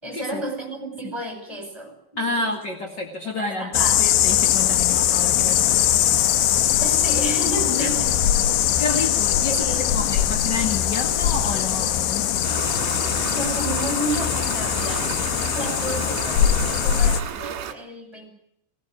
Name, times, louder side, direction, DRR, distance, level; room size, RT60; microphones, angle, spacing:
voice 1, 0.0-2.6 3.2-4.0 6.8-8.1 9.0-9.1 9.5-10.0 13.3-18.3, right 1 dB, 5° right, 3 dB, 4.7 m, -32 dB
voice 2, 2.2-6.2 7.7-7.9 8.5-12.6, left 2 dB, 55° left, 2 dB, 1.1 m, -30 dB
sound 1, 3.7-17.2, left 11 dB, 75° left, 3.2 m, -21 dB
Stream, 12.4-17.7, right 9 dB, 60° right, 3.1 m, -32 dB
19.0 x 18.5 x 9.3 m, 0.77 s
omnidirectional pair, 5.5 m